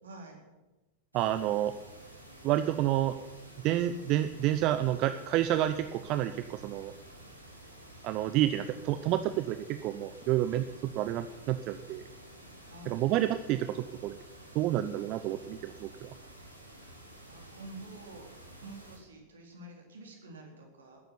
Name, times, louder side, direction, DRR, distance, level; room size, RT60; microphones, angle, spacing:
voice 1, 0.0-0.4 12.7-13.1 16.7-16.9 17.3-18.3 18.6-21.0, right 2 dB, 65° right, 1 dB, 4.2 m, -48 dB
voice 2, 1.1-1.7 2.4-3.2 3.6-6.9 8.0-12.0 12.9-14.2 14.5-16.1, right 13 dB, 40° right, 11 dB, 0.7 m, -29 dB
sound 1, 1.1-19.0, right 1 dB, 85° right, 3.3 m, -51 dB
13.5 x 10.5 x 9.8 m, 1.1 s
figure-of-eight pair, 90°, 0 cm